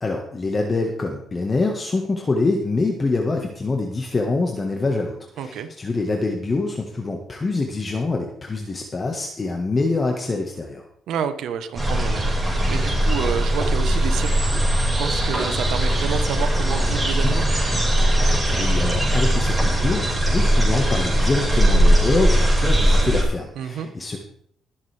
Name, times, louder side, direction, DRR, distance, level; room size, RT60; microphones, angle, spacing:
voice 1, 0.0-10.9 18.6-24.2, left 3 dB, 30° left, 2 dB, 1.6 m, -25 dB
voice 2, 5.4-5.7 11.1-14.7 15.0-17.5 23.6-23.9, right 7 dB, 80° right, 8 dB, 1.2 m, -29 dB
sound 1, 11.8-23.2, right 1 dB, 5° right, 5.5 m, -19 dB
20.5 x 7.3 x 3.5 m, 0.66 s
cardioid pair, 90°, 0 cm